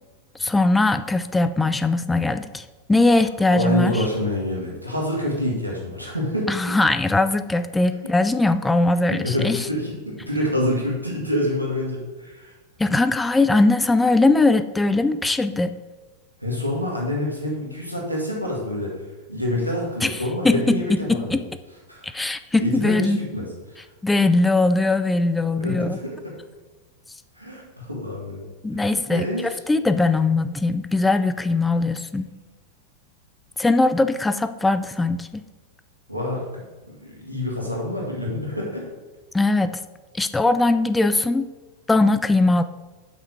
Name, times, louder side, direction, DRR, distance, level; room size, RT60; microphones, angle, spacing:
voice 1, 0.4-4.1 6.5-9.7 12.8-15.8 20.0-20.2 20.4-20.8 21.1-21.4 22.0-23.2 24.0-26.0 28.6-32.3 33.6-35.4 39.3-39.8 40.1-41.5 41.9-42.6, left 2 dB, 10° left, 11 dB, 0.3 m, -20 dB
voice 2, 3.5-6.5 9.0-12.5 16.4-21.4 21.9-22.1 22.6-23.8 25.6-26.2 27.4-28.5 28.7-28.8 29.1-29.5 36.1-36.4 36.9-38.9, left 1 dB, 90° right, -3 dB, 1.9 m, -27 dB
5.8 x 5.7 x 4.7 m, 1.3 s
figure-of-eight pair, 90°, 0 cm